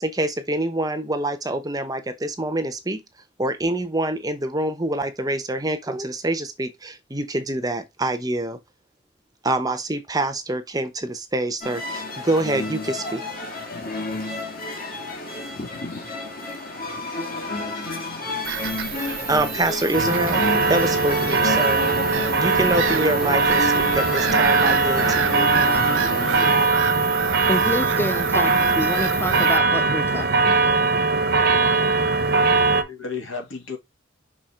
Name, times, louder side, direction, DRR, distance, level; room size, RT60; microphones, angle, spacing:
voice 1, 0.0-3.0 3.4-8.6 9.4-13.2 19.0-20.4 20.7-21.9 22.1-25.6, right 1 dB, 20° right, 0.9 m, -26 dB
sound 1, 11.6-26.7, left 2 dB, 45° left, 1.9 m, -30 dB
Bird vocalization bird call bird song / Gull seagull, 18.4-29.6, right 9 dB, 70° right, 0.5 m, -29 dB
sound 2, 19.9-32.8, right 3 dB, 50° right, 1.0 m, -20 dB
voice 2, 27.5-30.9, left 1 dB, 10° left, 0.3 m, -28 dB
voice 3, 32.0-33.8, left 5 dB, 75° left, 2.8 m, -35 dB
5.9 x 4.1 x 3.8 m
head